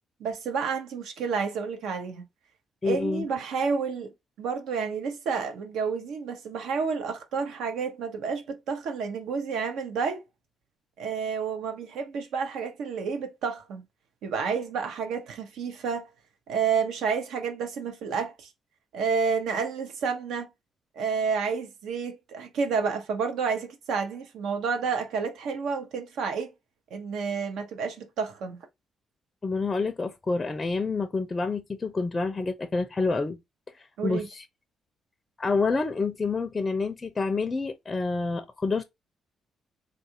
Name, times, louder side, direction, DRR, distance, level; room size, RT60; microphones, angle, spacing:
voice 1, 0.2-2.3 2.8-4.1 4.4-10.2 11.0-13.8 14.2-16.1 16.5-18.5 18.9-20.5 21.0-26.5 26.9-28.6 34.0-34.3, right 5 dB, 80° right, 0.8 m, -30 dB
voice 2, 2.8-3.3 29.4-33.4 33.7-34.4 35.4-38.8, left 4 dB, 25° left, 0.4 m, -28 dB
3.7 x 2.4 x 2.7 m
cardioid pair, 90°, 0 cm